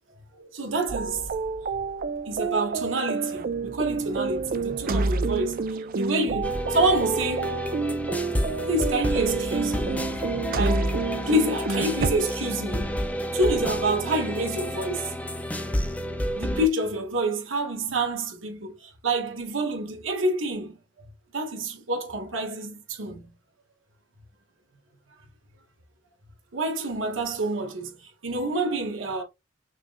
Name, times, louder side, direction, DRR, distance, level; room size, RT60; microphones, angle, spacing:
voice 1, 0.3-1.3 1.6-1.7 2.2-7.5 8.7-10.1 10.5-10.9 11.3-13.0 13.3-15.1 16.3-21.1 21.3-23.3 26.5-29.2, right 2 dB, 80° right, 1.5 m, -28 dB
sound 1, 0.9-12.1, right 4 dB, 45° right, 0.4 m, -29 dB
sound 2, 6.4-16.7, equal, 10° left, 0.7 m, -30 dB
6.0 x 2.4 x 2.5 m
head